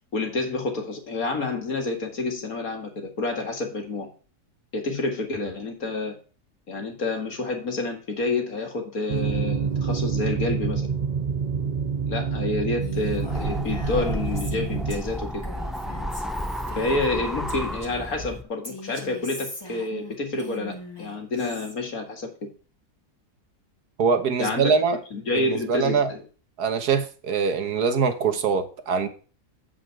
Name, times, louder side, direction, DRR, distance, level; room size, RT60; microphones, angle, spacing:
voice 1, 0.1-4.1 4.7-6.1 6.7-10.9 12.1-15.4 16.8-22.3 24.4-24.8 25.1-26.2, left 3 dB, 65° left, 2.5 m, -28 dB
sound 1, 9.1-15.0, right 6 dB, 45° right, 0.6 m, -27 dB
Female speech woman speaking, 12.8-18.2 18.6-21.7, left 1 dB, 15° left, 1.9 m, -41 dB
sound 2, 13.0-18.4, equal, ahead, 0.3 m, -32 dB
voice 2, 24.0-25.0 25.3-26.1 26.6-29.1, right 5 dB, 80° right, 1.8 m, -23 dB
8.4 x 7.8 x 4.8 m
omnidirectional pair, 1.7 m